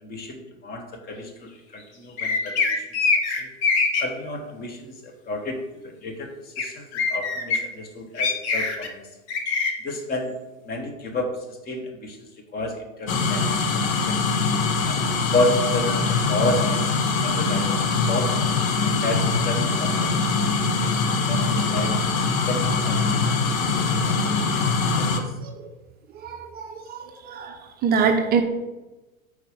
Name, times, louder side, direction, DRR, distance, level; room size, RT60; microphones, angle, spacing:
voice 1, 0.0-2.8 3.3-3.5 4.0-6.3 6.6-9.0 9.8-10.3 10.7-12.2 12.5-13.4 13.7-14.2 14.8-15.0 15.3-16.9 17.2-18.3 18.7-20.1 20.6-22.0 22.5-24.6 25.0-25.3, left 2 dB, 25° left, 4 dB, 1.1 m, -31 dB
sound 1, 2.2-4.0 6.6-6.7 6.9-7.6 8.2-8.9 9.3-9.7, left 4 dB, 55° left, 1.1 m, -23 dB
sound 2, 13.1-25.2, left 4 dB, 80° left, 0.9 m, -23 dB
voice 2, 26.2-27.0 27.3-27.5 27.8-28.4, right 6 dB, 25° right, 4 dB, 0.5 m, -23 dB
4.8 x 4.4 x 5.1 m, 1.1 s
hypercardioid pair, 110°, 40 cm